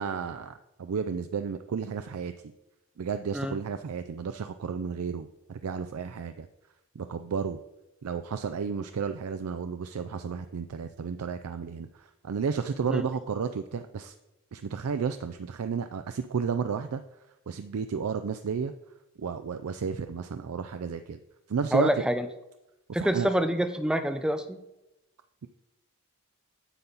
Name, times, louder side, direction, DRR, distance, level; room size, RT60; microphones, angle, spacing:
voice 1, 0.0-2.3 3.0-6.5 7.0-7.6 8.0-14.1 14.5-17.0 17.5-18.7 19.2-21.2 21.5-21.9 23.0-23.3, right 6 dB, 85° right, 9 dB, 0.4 m, -32 dB
voice 2, 21.7-22.3 22.9-24.6, right 1 dB, 5° right, 8 dB, 0.4 m, -26 dB
9.9 x 7.0 x 4.0 m, 0.95 s
head